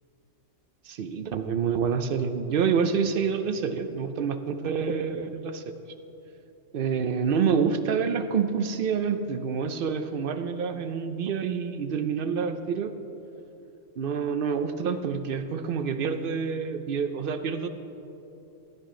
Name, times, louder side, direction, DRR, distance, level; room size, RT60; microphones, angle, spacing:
voice 1, 0.9-5.7 6.7-12.9 14.0-17.7, right 6 dB, 60° right, 9 dB, 0.6 m, -27 dB
13.5 x 9.8 x 3.8 m, 2.9 s
omnidirectional pair, 1.3 m